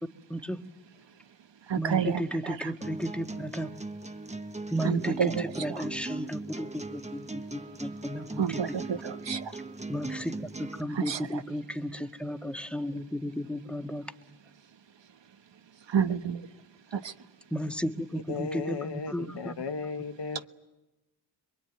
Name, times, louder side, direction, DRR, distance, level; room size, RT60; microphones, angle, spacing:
voice 1, 0.3-0.6 1.8-3.7 4.7-8.6 9.9-14.0 17.5-19.5, equal, ahead, 1.8 m, -34 dB
voice 2, 1.7-2.7 4.8-5.9 8.4-9.5 10.9-11.4 15.9-16.5 16.9-17.1, right 7 dB, 75° right, 1.3 m, -30 dB
sound 1, 2.8-10.8, right 3 dB, 15° right, 1.2 m, -39 dB
voice 3, 18.3-20.5, left 5 dB, 65° left, 1.3 m, -35 dB
27.0 x 23.0 x 9.4 m
cardioid pair, 65°, 44 cm